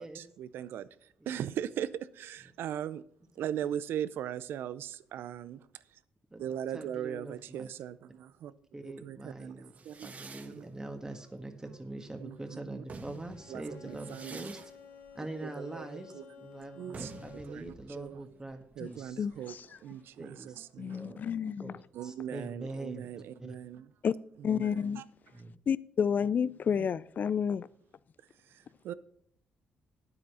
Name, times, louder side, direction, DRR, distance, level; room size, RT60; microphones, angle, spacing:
voice 1, 0.0-3.0 3.4-5.6 5.9-6.0 6.4-8.5 8.8-10.1 10.4-10.7 12.2-12.8 13.5-14.5 15.4-16.3 16.8-17.1 17.5-18.2 18.8-19.5 19.8-21.2 21.9-23.9 24.4-25.0 26.8-26.9 28.5-28.9, right 10 dB, 75° right, 0.5 m, -39 dB
voice 2, 6.7-7.7 8.7-9.7 10.0-14.6 15.1-19.2 20.2-21.2 21.6-23.5 25.3-25.5, right 2 dB, 20° right, 1.5 m, -43 dB
sound 1, 9.7-12.2 12.7-20.2, right 4 dB, 40° right, 1.5 m, -51 dB
Bowed string instrument, 13.3-17.7, left 6 dB, 75° left, 2.0 m, -52 dB
voice 3, 19.2-19.7 20.8-21.8 24.0-24.1 24.4-25.0 25.7-27.7, left 7 dB, 50° left, 0.4 m, -30 dB
9.5 x 8.1 x 5.5 m
cardioid pair, 70°, 4 cm